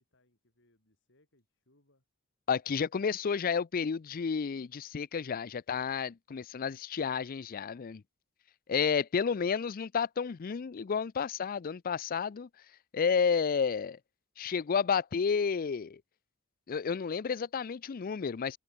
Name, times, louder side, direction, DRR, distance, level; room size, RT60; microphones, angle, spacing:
voice 1, 0.0-2.0, left 1 dB, 60° left, 7.1 m, -71 dB
voice 2, 2.5-8.0 8.7-12.5 12.9-14.0 14.4-16.0 16.7-18.6, left 6 dB, 40° left, 0.4 m, -31 dB
head